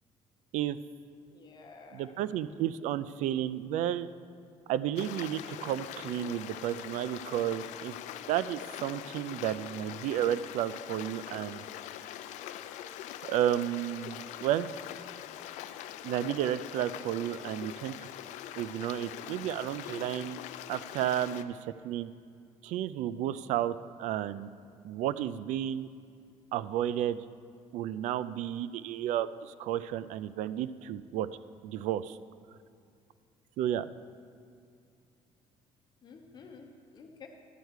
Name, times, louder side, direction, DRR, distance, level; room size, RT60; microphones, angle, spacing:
voice 1, 1.3-2.1 36.0-37.3, left 5 dB, 35° left, 2 dB, 0.9 m, -51 dB
voice 2, 1.9-4.1 4.7-8.0 8.3-11.6 13.2-14.7 16.0-18.1 18.6-20.4 20.7-21.6 21.8-22.1 22.6-24.5 24.8-25.9 26.5-27.2 27.7-31.3 31.6-32.2 33.6-33.9, right 11 dB, 85° right, 15 dB, 0.4 m, -32 dB
Stream, 5.0-21.4, left 11 dB, 90° left, 0.4 m, -43 dB
12.0 x 4.6 x 8.1 m, 2.3 s
cardioid pair, 145°, 12 cm